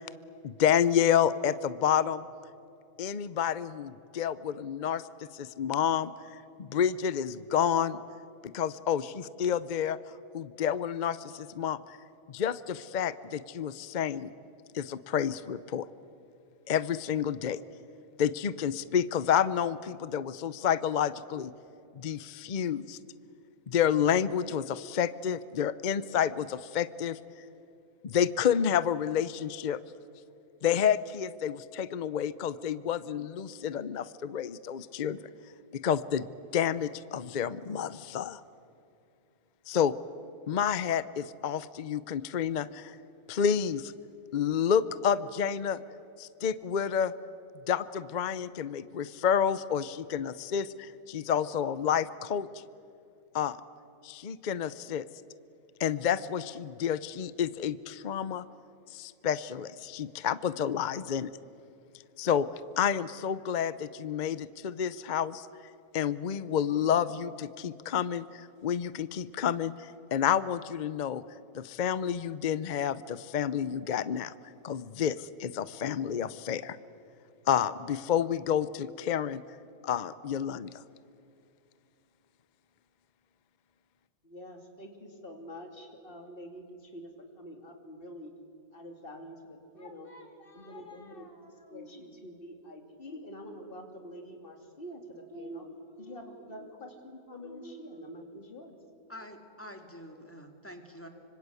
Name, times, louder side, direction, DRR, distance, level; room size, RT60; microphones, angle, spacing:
voice 1, 0.4-2.2 3.0-8.0 8.4-10.0 10.3-12.0 12.3-14.3 14.7-15.8 16.7-17.6 18.2-21.5 22.0-23.0 23.7-27.2 28.0-29.8 30.6-35.3 35.7-36.3 36.5-38.4 39.7-39.9 40.5-43.0 43.3-43.9 44.3-45.8 46.2-47.1 47.7-52.5 53.3-53.6 54.0-55.0 55.8-58.4 58.9-61.3 62.2-62.5 62.8-65.5 65.9-71.2 71.5-74.3 74.6-76.8 77.5-79.4 79.8-80.7, left 8 dB, 55° left, 16 dB, 0.5 m, -29 dB
voice 2, 84.2-87.1 87.4-88.3 88.7-98.8, equal, 35° left, 3 dB, 3.0 m, -46 dB
voice 3, 99.1-101.1, equal, 10° left, 4 dB, 2.3 m, -46 dB
25.5 x 25.5 x 8.3 m, 2.7 s
omnidirectional pair, 1.7 m